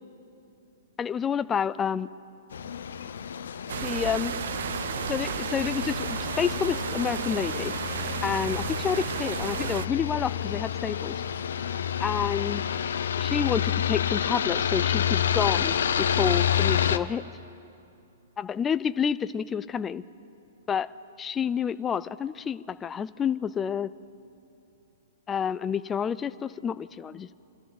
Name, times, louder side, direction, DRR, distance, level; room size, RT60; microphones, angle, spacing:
voice 1, 1.0-2.1 3.8-4.3 5.1-7.7 8.2-11.2 12.0-12.6 13.2-17.2 18.4-20.0 20.7-20.9 21.2-23.9 25.3-27.3, left 7 dB, 15° left, 14 dB, 0.4 m, -29 dB
sound 1, 2.5-17.0, left 9 dB, 85° left, 0.7 m, -29 dB
sound 2, 3.7-9.9, right 10 dB, 65° right, 0.3 m, -33 dB
27.5 x 12.5 x 4.0 m, 2.7 s
hypercardioid pair, 155°, 0 cm